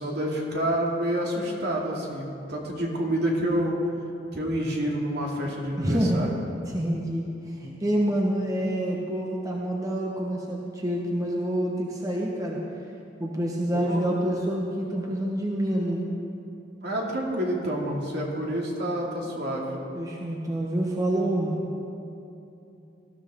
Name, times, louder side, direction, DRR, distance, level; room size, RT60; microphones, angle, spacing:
voice 1, 0.0-3.8 4.3-6.3 13.7-14.1 16.8-19.7, right 1 dB, 60° right, -2 dB, 2.5 m, -28 dB
voice 2, 5.8-6.4 6.7-12.6 13.2-16.0 19.9-21.7, right 1 dB, 20° right, -2 dB, 1.2 m, -27 dB
18.5 x 13.5 x 3.7 m, 2.8 s
head